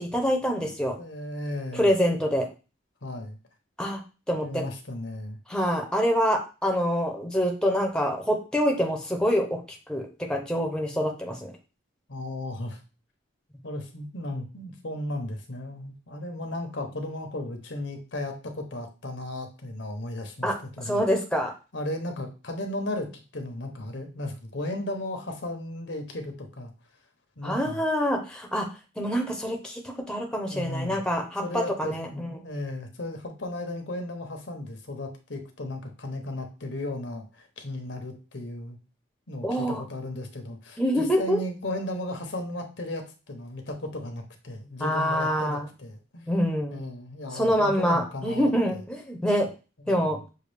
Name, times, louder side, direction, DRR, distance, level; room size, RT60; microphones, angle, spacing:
voice 1, 0.0-1.0 1.7-2.5 3.8-4.0 4.3-4.6 5.5-11.5 20.4-21.5 27.4-28.7 29.0-32.4 39.4-39.8 40.8-41.4 44.8-45.7 46.3-46.8 47.3-49.5 49.9-50.2, equal, 5° left, 2 dB, 0.7 m, -26 dB
voice 2, 1.0-1.9 3.0-3.4 4.3-5.4 12.1-12.8 13.6-20.5 20.8-21.0 21.7-23.1 23.3-26.7 27.4-27.9 30.5-31.0 31.4-38.8 39.3-46.3 46.7-48.8 49.9-50.0, left 1 dB, 75° left, 5 dB, 0.9 m, -35 dB
6.5 x 2.4 x 3.3 m, 0.32 s
head